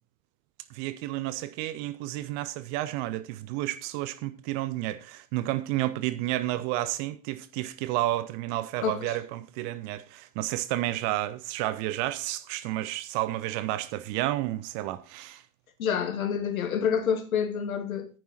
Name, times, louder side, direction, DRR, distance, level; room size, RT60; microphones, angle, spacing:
voice 1, 0.7-15.4, right 15 dB, 20° right, 0.4 m, -31 dB
voice 2, 8.8-9.2 15.8-18.1, left 7 dB, 60° left, 2.1 m, -28 dB
10.5 x 9.3 x 4.0 m
figure-of-eight pair, 95°, 46 cm